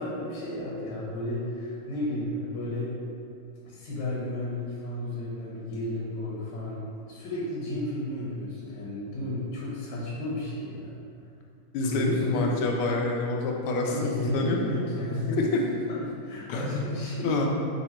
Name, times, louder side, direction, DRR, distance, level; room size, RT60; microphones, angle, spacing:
voice 1, 0.0-2.9 3.7-10.9 11.9-12.6 13.8-17.3, left 1 dB, 65° left, -7 dB, 1.4 m, -32 dB
voice 2, 11.7-15.0 16.5-16.8 17.2-17.5, left 2 dB, 85° left, 1 dB, 1.5 m, -28 dB
3.8 x 2.8 x 4.2 m, 2.4 s
omnidirectional pair, 2.3 m